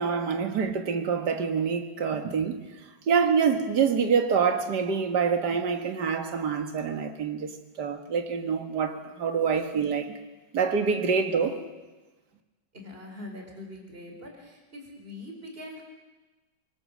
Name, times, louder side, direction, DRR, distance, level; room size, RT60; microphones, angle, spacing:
voice 1, 0.0-2.6 3.1-7.5 7.8-10.1 10.5-11.6, right 6 dB, 70° right, 2.3 m, -26 dB
voice 2, 12.7-15.8, left 1 dB, 30° right, 4.2 m, -43 dB
26.0 x 23.0 x 6.4 m
omnidirectional pair, 1.9 m